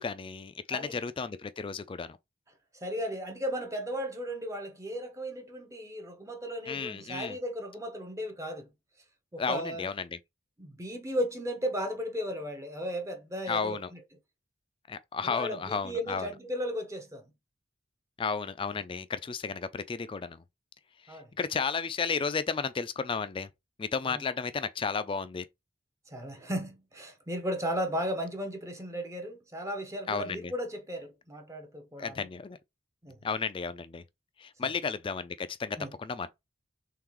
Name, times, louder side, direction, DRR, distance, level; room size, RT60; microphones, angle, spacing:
voice 1, 0.0-2.2 6.7-7.4 9.4-10.2 13.5-13.9 14.9-16.3 18.2-20.4 21.1-23.5 23.8-25.5 30.1-30.5 32.0-32.6 33.2-34.0 34.4-36.3, left 5 dB, 25° left, 0.3 m, -33 dB
voice 2, 2.7-8.7 9.3-9.9 10.6-14.0 15.2-17.2 21.1-21.3 24.0-24.2 26.1-32.3 33.0-33.2 34.6-34.7 35.8-35.9, equal, 15° right, 0.7 m, -35 dB
3.8 x 3.4 x 3.0 m
head